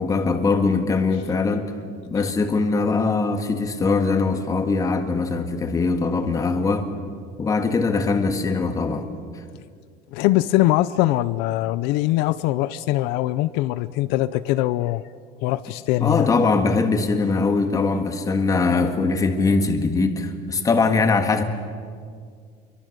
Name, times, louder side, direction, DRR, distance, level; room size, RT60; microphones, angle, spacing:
voice 1, 0.0-1.7 2.1-6.9 7.4-9.1 16.0-21.4, left 4 dB, 20° left, 1.9 m, -21 dB
voice 2, 10.1-15.0 15.4-16.3, left 16 dB, 75° left, 0.7 m, -22 dB
28.5 x 23.5 x 6.8 m
cardioid pair, 165°, 17 cm